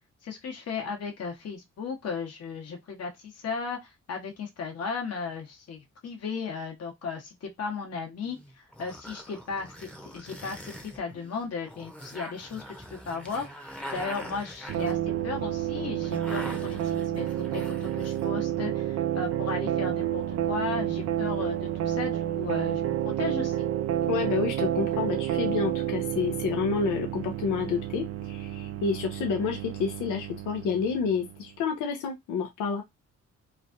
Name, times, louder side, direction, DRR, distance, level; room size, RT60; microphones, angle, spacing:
voice 1, 0.2-15.0 15.2-23.7, left 5 dB, 55° left, 1.2 m, -36 dB
sound 1, 8.3-18.3, equal, 5° left, 0.9 m, -43 dB
sound 2, 14.7-31.4, right 12 dB, 55° right, 0.4 m, -30 dB
voice 2, 24.1-32.8, left 6 dB, 85° left, 0.8 m, -29 dB
3.2 x 2.3 x 2.5 m
cardioid pair, 90°, 30 cm